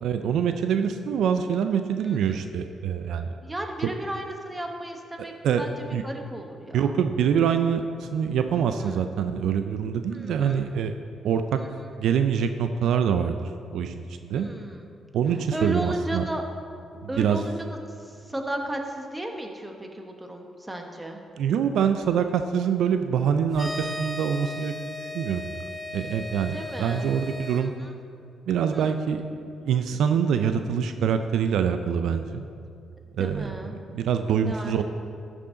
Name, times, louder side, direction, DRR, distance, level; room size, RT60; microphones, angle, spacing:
voice 1, 0.0-3.3 5.4-5.6 5.9-6.0 6.7-10.9 11.2-11.6 12.0-13.4 13.7-14.5 15.1-16.2 17.0-17.4 21.4-25.6 25.9-27.7 28.5-29.2 29.6-32.5 33.1-34.8, right 7 dB, 80° right, 8 dB, 0.4 m, -25 dB
voice 2, 3.4-5.7 6.0-7.0 8.8-9.0 10.1-10.6 14.4-14.9 15.5-16.4 17.1-17.5 18.0-21.2 26.5-27.1 27.6-27.9 28.7-28.9 33.2-33.8 34.4-34.8, right 1 dB, 15° right, 3 dB, 1.2 m, -34 dB
sound 1, 23.5-27.6, left 2 dB, 15° left, 1.3 m, -36 dB
13.5 x 6.2 x 3.9 m, 2.4 s
cardioid pair, 90°, 0 cm